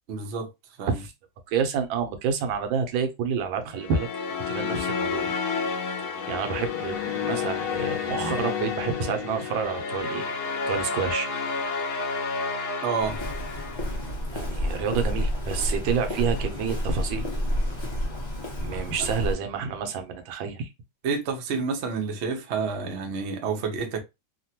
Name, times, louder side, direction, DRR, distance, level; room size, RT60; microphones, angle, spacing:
voice 1, 0.1-0.5 0.8-0.9 12.8-13.2 21.0-24.0, right 5 dB, 65° right, 0.6 m, -29 dB
voice 2, 1.5-4.1 4.5-5.3 6.3-10.3 10.7-11.3 14.3-17.3 18.6-20.7, right 6 dB, 85° right, 1.4 m, -29 dB
sound 1, 3.7-14.1, left 5 dB, 70° left, 1.0 m, -30 dB
Walk footsteps, 13.0-19.3, equal, 35° left, 0.4 m, -29 dB
3.4 x 2.1 x 2.7 m
omnidirectional pair, 2.1 m